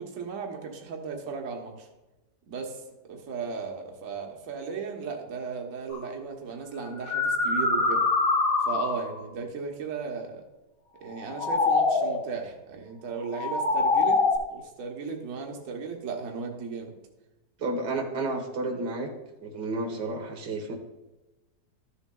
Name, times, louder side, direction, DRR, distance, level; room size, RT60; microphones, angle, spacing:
voice 1, 0.0-1.9 2.5-2.8 3.1-8.0 8.7-10.4 11.0-14.2 14.5-16.9, right 5 dB, 55° right, 2 dB, 1.4 m, -36 dB
sound 1, 5.9-6.1 6.9-9.2 11.1-12.3 13.2-14.4, left 3 dB, 45° left, 0.8 m, -24 dB
voice 2, 17.6-19.1 19.4-20.8, right 2 dB, 90° right, 3 dB, 1.9 m, -31 dB
13.5 x 7.2 x 2.3 m, 1.1 s
omnidirectional pair, 1.8 m